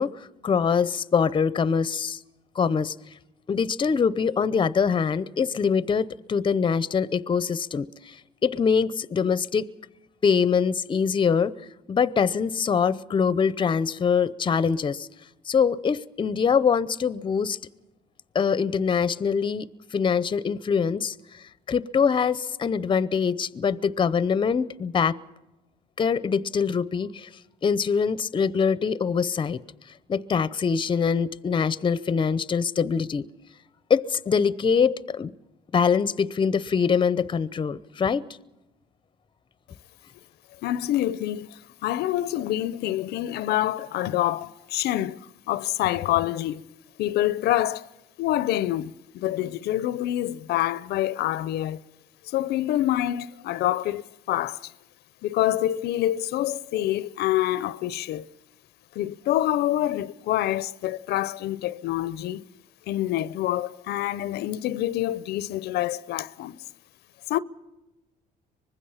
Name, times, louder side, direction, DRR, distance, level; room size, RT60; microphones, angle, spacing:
voice 1, 0.0-2.2 2.6-2.9 3.5-8.1 8.4-9.7 10.2-11.5 11.9-15.1 15.5-17.6 18.3-21.1 21.7-25.2 26.0-27.3 27.6-29.6 30.1-33.2 33.9-35.3 35.7-38.3, left 6 dB, 30° left, 0.7 m, -24 dB
voice 2, 40.6-41.5 41.8-45.2 45.5-46.6 47.0-47.9 48.2-51.8 52.3-54.7 55.2-58.3 59.0-62.4 62.9-66.6 67.3-67.4, left 13 dB, 75° left, 0.6 m, -26 dB
24.5 x 21.0 x 5.7 m
cardioid pair, 110°, 17 cm